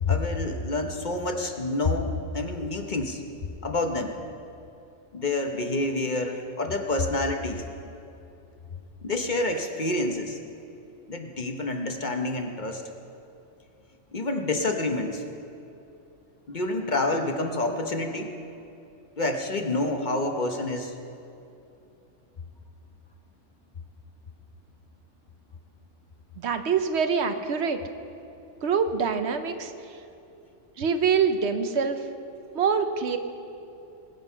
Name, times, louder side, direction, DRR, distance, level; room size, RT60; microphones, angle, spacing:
voice 1, 0.0-3.2 3.6-4.2 5.1-7.6 9.0-10.4 11.1-12.8 14.1-15.2 16.5-18.3 19.2-20.9, left 2 dB, 40° left, 4 dB, 1.0 m, -28 dB
voice 2, 26.4-27.8 28.6-29.7 30.8-32.0 32.5-33.2, right 6 dB, 65° right, 8 dB, 1.0 m, -25 dB
20.0 x 7.8 x 5.6 m, 2.8 s
omnidirectional pair, 1.3 m